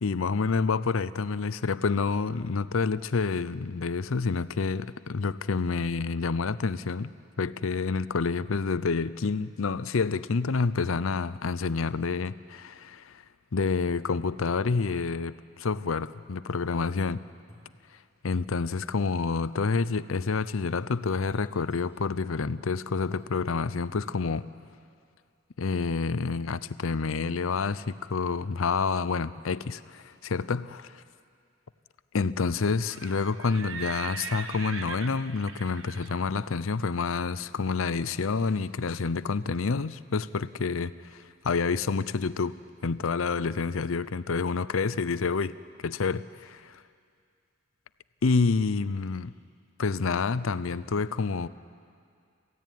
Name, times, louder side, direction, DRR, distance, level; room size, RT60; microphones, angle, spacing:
voice 1, 0.0-7.1 7.4-13.2 13.5-17.2 18.2-24.4 25.6-31.0 32.1-42.6 42.8-45.5 45.8-46.8 48.2-49.3 49.8-51.5, left 4 dB, 85° left, 16 dB, 0.6 m, -28 dB
Ceramic jug bowl and bottle clank, 16.2-16.6 17.4-19.1 19.4-19.7 20.5-21.9 22.3-22.4 22.9-23.9 24.3-25.0 25.6-29.4 29.7-29.9 30.2-30.3, left 1 dB, 20° right, 3.5 m, -60 dB
Livestock farm animals working animals, 32.7-38.6, right 5 dB, 70° right, 1.2 m, -42 dB
27.5 x 15.5 x 9.3 m, 2.3 s
head